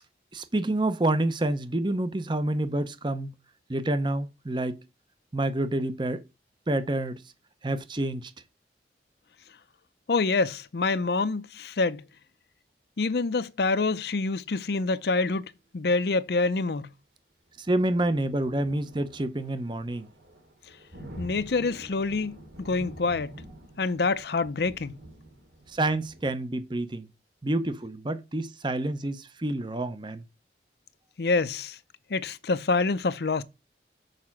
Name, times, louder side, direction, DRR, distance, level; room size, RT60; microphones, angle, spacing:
voice 1, 0.3-3.3 3.7-4.8 5.3-6.2 6.7-7.2 7.6-8.3 17.6-20.1 25.7-27.1 27.4-30.2, right 1 dB, 25° right, 0.7 m, -28 dB
voice 2, 10.1-12.0 13.0-16.9 21.2-23.4 23.8-24.9 31.2-31.8 32.1-33.4, left 3 dB, 65° left, 0.6 m, -26 dB
sound 1, 17.6-26.3, right 1 dB, 85° right, 2.6 m, -47 dB
6.7 x 4.9 x 5.8 m
head